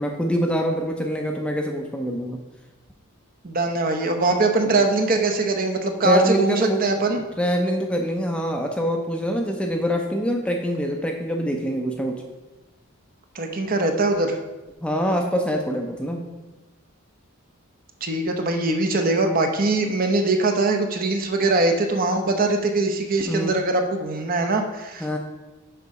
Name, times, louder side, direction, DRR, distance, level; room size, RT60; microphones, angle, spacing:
voice 1, 0.0-2.4 4.6-4.8 6.0-6.9 7.4-12.2 14.8-16.3 23.3-23.5 25.0-25.2, equal, 5° left, 2 dB, 0.5 m, -24 dB
voice 2, 3.4-7.2 13.3-14.4 18.0-25.2, right 2 dB, 40° right, 4 dB, 0.7 m, -22 dB
6.8 x 5.2 x 4.8 m, 1.1 s
head